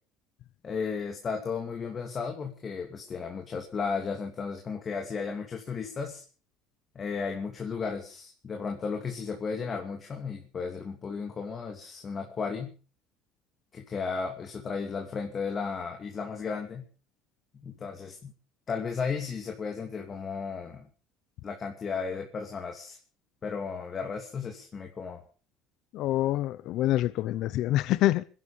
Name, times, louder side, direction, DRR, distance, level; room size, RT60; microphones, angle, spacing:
voice 1, 0.6-6.2 6.9-12.8 13.7-16.9 17.6-18.3 18.7-20.9 21.4-23.0 23.4-25.2, left 5 dB, 30° left, 2.7 m, -34 dB
voice 2, 25.9-28.2, left 15 dB, 60° left, 0.8 m, -26 dB
25.0 x 11.5 x 5.1 m
cardioid pair, 130°, 0 cm